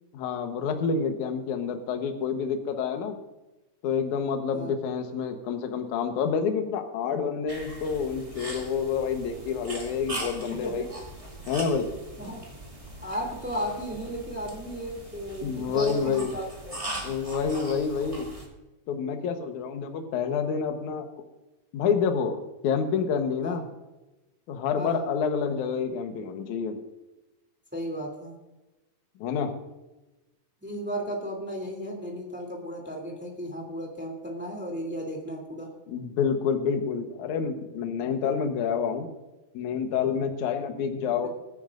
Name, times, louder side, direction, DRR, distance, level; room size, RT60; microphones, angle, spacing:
voice 1, 0.1-3.2 3.8-10.9 11.5-11.9 15.4-16.3 17.0-18.3 18.9-21.1 21.7-22.4 22.6-23.6 24.5-26.8 29.2-29.5 35.9-39.1 39.5-41.3, left 6 dB, 65° left, 6 dB, 2.0 m, -28 dB
sound 1, 7.5-18.5, right 1 dB, 25° right, 0.7 m, -40 dB
voice 2, 10.5-10.9 11.9-12.4 13.0-17.0 23.4-23.6 24.8-25.1 27.7-28.4 30.6-35.7, equal, 5° right, 0 dB, 1.7 m, -35 dB
22.0 x 9.9 x 2.6 m, 1.1 s
omnidirectional pair, 4.8 m